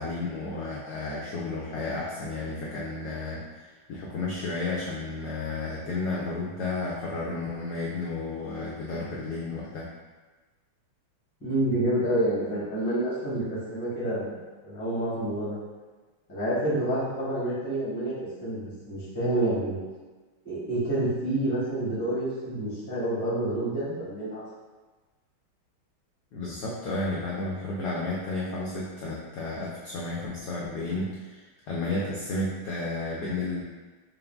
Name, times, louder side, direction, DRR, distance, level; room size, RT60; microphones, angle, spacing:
voice 1, 0.0-9.9 26.3-33.6, left 2 dB, 80° left, -4 dB, 0.9 m, -32 dB
voice 2, 11.4-14.4 14.6-15.6 16.3-19.8 20.4-24.4, right 1 dB, 10° left, -9 dB, 0.4 m, -28 dB
4.6 x 2.0 x 3.4 m, 1.3 s
omnidirectional pair, 2.3 m